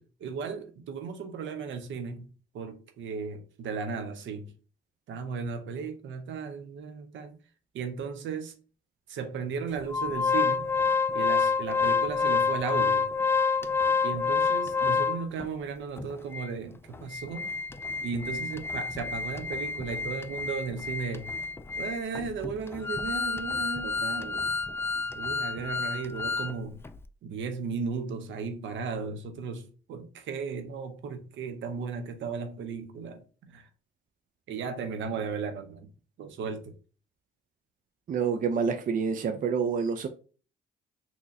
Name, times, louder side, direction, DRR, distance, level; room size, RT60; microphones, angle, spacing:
voice 1, 0.0-4.5 5.1-7.4 7.7-8.5 9.1-10.7 11.1-13.1 14.0-17.5 18.0-21.4 21.8-24.5 24.9-26.8 27.2-33.7 34.5-35.9 36.2-36.7, right 5 dB, 75° right, 0.8 m, -35 dB
Organ, 9.9-15.5 16.0-16.1 16.3-16.5 16.9-26.5 26.8-27.0, left 5 dB, 10° left, 0.3 m, -28 dB
voice 2, 38.1-40.1, right 6 dB, 45° right, 0.5 m, -27 dB
3.8 x 2.9 x 2.6 m
cardioid pair, 90°, 20 cm